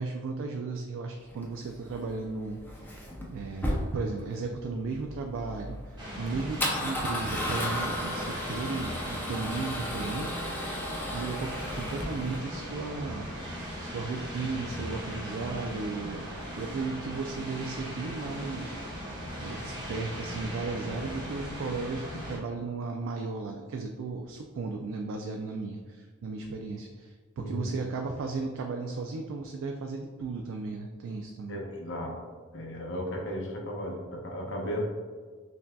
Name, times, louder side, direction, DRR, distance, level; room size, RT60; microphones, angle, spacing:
voice 1, 0.0-13.3 13.8-18.8 19.4-31.6, right 4 dB, 60° right, 2 dB, 0.3 m, -35 dB
Male speech man speaking / Car / Engine starting, 1.3-12.4, left 1 dB, 10° left, 0.5 m, -35 dB
sound 1, 6.0-22.4, equal, 20° right, 1.3 m, -38 dB
voice 2, 27.4-27.8 31.5-32.2 32.5-34.9, equal, 60° left, 0 dB, 0.7 m, -35 dB
5.6 x 2.6 x 2.2 m, 1.5 s
head